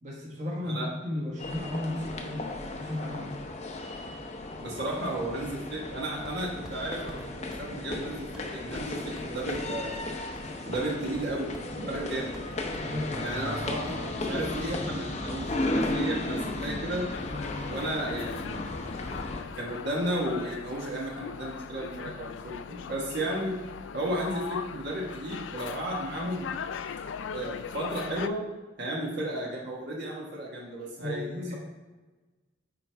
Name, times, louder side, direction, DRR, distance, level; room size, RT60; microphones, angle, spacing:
voice 1, 0.0-3.3 11.8-12.3 12.7-13.4 13.7-13.8 17.3-17.5 31.0-31.5, left 1 dB, 40° right, -3 dB, 1.5 m, -35 dB
sound 1, 1.4-19.4, left 2 dB, 35° left, 0.7 m, -35 dB
voice 2, 4.6-10.1 10.6-12.3 13.2-17.1 17.7-18.6 19.1-23.6 23.9-26.5 27.3-28.4 28.8-31.5, right 1 dB, 65° right, -3 dB, 1.4 m, -34 dB
sound 2, 6.2-6.8 7.1-7.2 7.5-7.7 7.9-8.1 8.3-8.5 8.8-10.1 10.3-10.9 11.1-11.7 11.9-13.3, equal, 5° right, 0.7 m, -47 dB
sound 3, 17.1-28.3, left 6 dB, 85° left, 0.3 m, -39 dB
9.4 x 4.5 x 3.4 m, 1.2 s
head